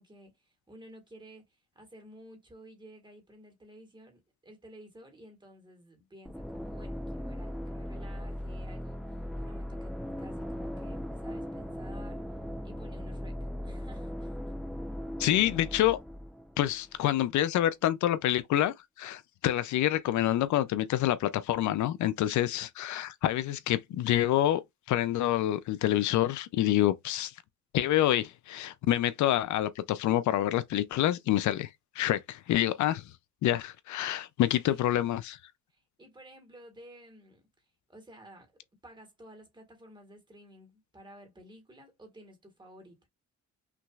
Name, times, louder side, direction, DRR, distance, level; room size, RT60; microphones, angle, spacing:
voice 1, 0.0-12.2 12.6-14.5 34.6-34.8 35.7-37.4 37.9-38.5 38.8-43.1, right 1 dB, 15° right, 1.7 m, -53 dB
sound 1, 6.2-17.0, equal, ahead, 0.5 m, -38 dB
voice 2, 15.2-16.0 16.6-24.6 24.9-27.3 27.7-31.7 32.0-33.0 33.4-35.4, left 13 dB, 80° left, 0.5 m, -27 dB
5.8 x 3.0 x 2.4 m
cardioid pair, 150°, 29 cm